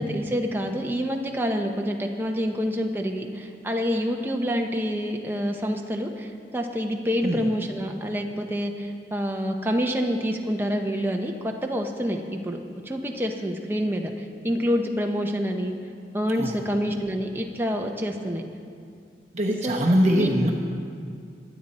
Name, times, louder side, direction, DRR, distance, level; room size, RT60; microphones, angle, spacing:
voice 1, 0.0-12.6 12.8-15.8 16.1-18.4 19.6-20.3, equal, 10° right, 2 dB, 0.9 m, -27 dB
voice 2, 19.3-20.5, equal, 40° right, -1 dB, 1.0 m, -22 dB
23.0 x 9.1 x 4.3 m, 2.4 s
head